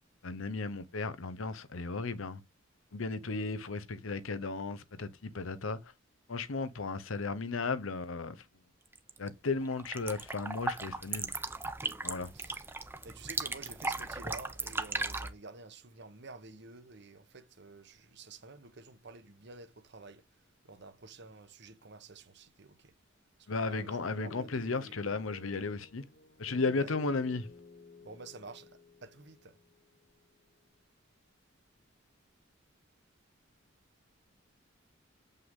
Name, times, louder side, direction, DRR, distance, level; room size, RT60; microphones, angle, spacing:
voice 1, 0.2-2.4 2.9-5.9 6.3-8.4 9.2-11.3 12.0-12.3 23.5-26.1 26.4-27.5, left 3 dB, 90° left, 0.8 m, -35 dB
sound 1, 8.9-9.3 9.6-15.3, right 3 dB, 10° right, 0.7 m, -37 dB
voice 2, 12.3-12.7 13.0-20.2 20.6-22.9 23.4-25.0 26.7-26.9 28.0-29.6, right 3 dB, 60° right, 1.1 m, -50 dB
sound 2, 24.2-30.3, left 3 dB, 50° left, 1.1 m, -53 dB
8.1 x 5.6 x 3.7 m
head